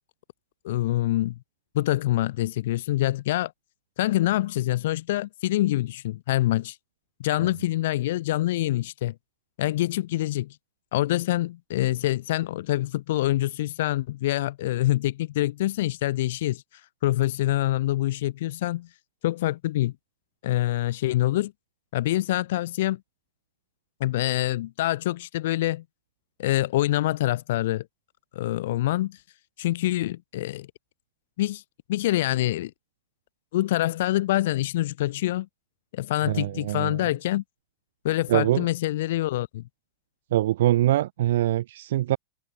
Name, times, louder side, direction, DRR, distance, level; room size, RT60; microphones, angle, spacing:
voice 1, 0.6-1.4 1.7-3.5 4.0-6.8 7.2-9.1 9.6-10.6 10.9-16.6 17.0-18.9 19.2-19.9 20.4-21.5 21.9-23.0 24.0-25.8 26.4-27.9 28.4-29.2 29.6-30.7 31.4-31.6 31.9-32.7 33.5-35.5 35.9-37.4 38.0-39.7, left 15 dB, 65° left, 5.6 m, -25 dB
voice 2, 36.2-37.1 38.3-38.7 40.3-42.2, right 14 dB, 70° right, 3.1 m, -23 dB
supercardioid pair, 165°, 0 cm